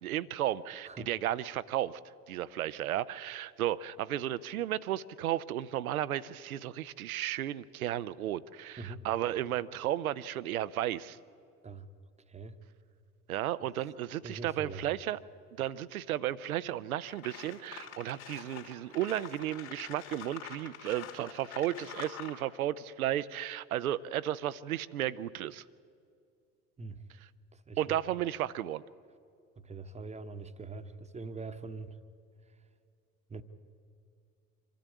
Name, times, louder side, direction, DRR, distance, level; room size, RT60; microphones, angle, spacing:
voice 1, 0.0-2.0 2.3-11.2 13.3-15.2 15.6-25.6 27.8-28.8, right 12 dB, 70° right, 18 dB, 0.7 m, -34 dB
voice 2, 8.8-9.1 11.6-11.9 12.3-12.6 13.6-13.7 14.2-14.8 26.8-27.0 27.5-28.0 29.6-32.0 33.3-33.4, right 3 dB, 15° right, 9 dB, 1.0 m, -43 dB
sound 1, 16.6-16.7 17.1-22.4, left 9 dB, 65° left, 3.1 m, -46 dB
25.0 x 13.0 x 8.3 m, 2.4 s
figure-of-eight pair, 65°, 44 cm